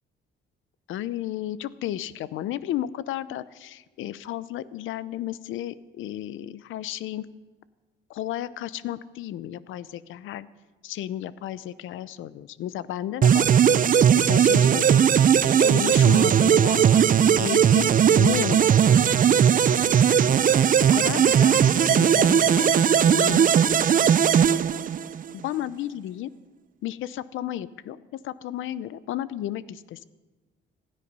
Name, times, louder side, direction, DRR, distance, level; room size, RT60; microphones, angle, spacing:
voice 1, 0.9-7.3 8.1-10.5 10.8-13.6 14.1-15.1 15.6-19.1 20.9-24.2 24.4-24.8 25.3-26.3 26.8-30.0, left 12 dB, 85° left, 17 dB, 0.7 m, -33 dB
sound 1, 13.2-25.3, right 8 dB, 45° right, 0.5 m, -18 dB
26.0 x 9.9 x 5.5 m, 1.2 s
cardioid pair, 90°, 20 cm